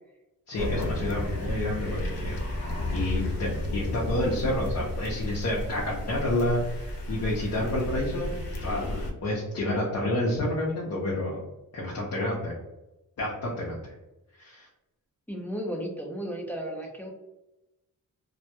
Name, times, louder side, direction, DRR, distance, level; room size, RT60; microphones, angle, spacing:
voice 1, 0.5-8.3 8.6-11.4 11.7-12.5 13.2-13.9 14.4-14.7, left 1 dB, 50° left, -4 dB, 0.6 m, -29 dB
sound 1, 0.6-9.1, left 1 dB, 85° left, 0.6 m, -32 dB
voice 2, 15.3-17.1, equal, 5° left, 0 dB, 0.4 m, -34 dB
2.2 x 2.1 x 2.7 m, 0.97 s
wide cardioid pair, 130°, 35 cm